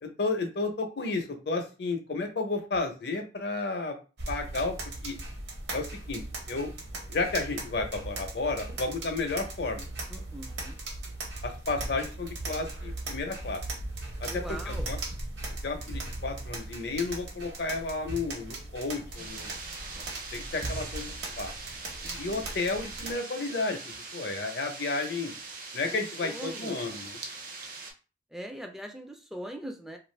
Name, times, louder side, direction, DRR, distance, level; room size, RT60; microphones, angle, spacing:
voice 1, 0.0-4.0 4.3-4.7 5.0-5.1 5.7-6.2 6.5-6.7 7.1-9.9 11.4-13.6 14.2-15.0 15.6-19.5 20.3-21.5 22.2-25.3 25.7-27.2, left 3 dB, 65° left, 5 dB, 0.6 m, -32 dB
sound 1, 4.2-23.1, right 2 dB, 70° right, 0.9 m, -38 dB
voice 2, 10.1-10.8 14.3-14.9 22.0-22.5 25.9-26.8 28.3-30.0, equal, ahead, 3 dB, 0.3 m, -41 dB
sound 2, 19.2-27.9, right 3 dB, 55° right, 0.6 m, -42 dB
2.5 x 2.5 x 3.2 m, 0.33 s
head